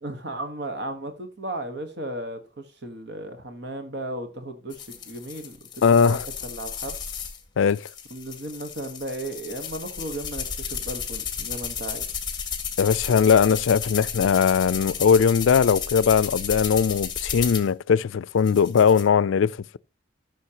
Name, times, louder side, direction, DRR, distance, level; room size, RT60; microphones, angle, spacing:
voice 1, 0.0-7.0 8.1-12.1, right 1 dB, 60° right, 1.3 m, -35 dB
sound 1, 4.7-7.4 7.7-17.7 18.4-19.0, left 7 dB, 20° left, 1.9 m, -33 dB
voice 2, 5.8-6.2 7.6-7.9 12.8-19.8, left 6 dB, 80° left, 0.4 m, -20 dB
14.5 x 6.3 x 2.9 m
head